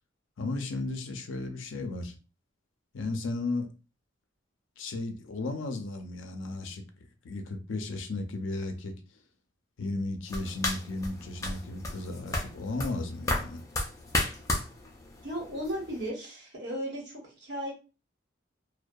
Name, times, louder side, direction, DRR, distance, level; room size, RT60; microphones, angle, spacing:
voice 1, 0.4-2.1 2.9-3.7 4.8-8.9 9.8-13.6, left 2 dB, 80° left, 0.5 m, -35 dB
sound 1, 10.3-16.1, left 1 dB, 15° left, 0.3 m, -34 dB
voice 2, 15.2-17.7, equal, 60° right, 1.1 m, -35 dB
2.6 x 2.2 x 2.2 m
head